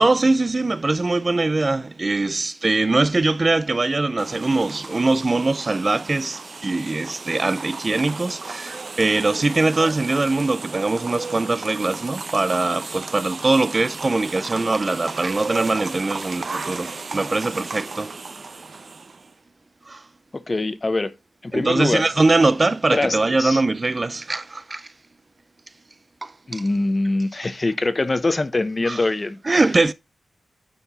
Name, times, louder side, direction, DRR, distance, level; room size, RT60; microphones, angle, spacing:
voice 1, 0.0-18.2 19.9-20.0 21.5-24.9 26.2-26.6 28.9-29.1 29.5-29.9, right 3 dB, 35° right, 0.4 m, -22 dB
sound 1, 4.2-19.3, right 4 dB, 50° right, 0.9 m, -34 dB
voice 2, 20.3-21.1 21.4-22.1 22.9-23.6 26.5-29.4, left 2 dB, 30° left, 0.7 m, -23 dB
9.1 x 4.6 x 4.0 m
wide cardioid pair, 90°, 0 cm